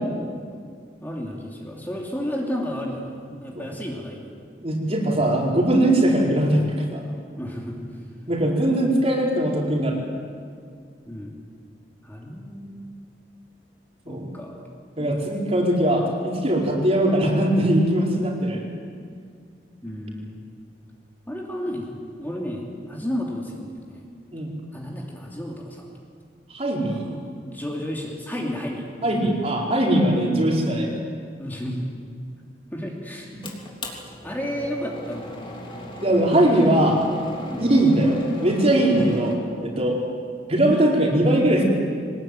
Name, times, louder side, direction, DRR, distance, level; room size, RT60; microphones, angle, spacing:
voice 1, 1.0-4.3 7.4-7.8 11.1-11.3 12.0-12.9 14.1-14.6 15.0-15.2 19.8-20.4 21.3-24.0 24.7-25.9 26.9-28.9 31.4-31.9 32.7-33.3 34.2-35.5 37.5-37.7 39.7-39.9, equal, 10° left, -2 dB, 2.9 m, -32 dB
voice 2, 4.6-7.0 8.3-10.0 14.1-14.3 15.0-18.6 24.3-24.5 26.5-27.1 29.0-30.9 33.3-33.4 36.0-37.0 37.6-39.4 39.6-40.0 40.5-41.6, right 1 dB, 35° right, -1 dB, 4.6 m, -20 dB
sound 1, 33.4-39.4, left 1 dB, 30° left, 3.2 m, -37 dB
23.5 x 20.0 x 9.1 m, 2.1 s
head